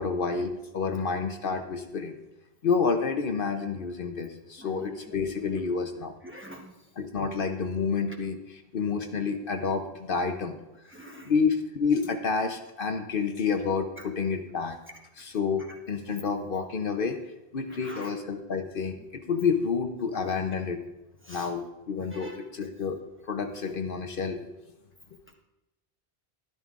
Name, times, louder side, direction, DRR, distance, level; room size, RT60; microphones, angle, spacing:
voice 1, 0.0-2.2 2.6-6.1 7.0-10.5 11.2-14.8 15.1-17.2 17.5-20.8 21.3-24.4, left 5 dB, 60° left, 5 dB, 0.9 m, -29 dB
voice 2, 4.6-5.0 6.2-6.7 10.9-11.3 17.7-18.1 21.3-21.5 22.1-22.4, equal, 10° right, 0 dB, 1.0 m, -44 dB
13.0 x 12.0 x 2.5 m, 0.97 s
omnidirectional pair, 1.1 m